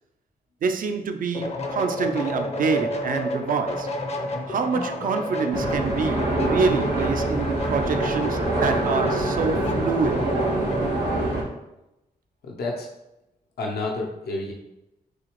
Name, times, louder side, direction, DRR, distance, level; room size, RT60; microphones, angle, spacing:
voice 1, 0.6-3.9 4.5-10.2, right 5 dB, 55° right, 0.5 m, -26 dB
sound 1, 1.3-11.0, left 1 dB, 40° left, 0.7 m, -31 dB
sound 2, 5.5-11.4, right 2 dB, 85° right, 1.6 m, -25 dB
voice 2, 12.4-12.9 13.6-14.5, left 2 dB, 70° left, 0.8 m, -29 dB
6.3 x 2.4 x 3.1 m
cardioid pair, 65°, 17 cm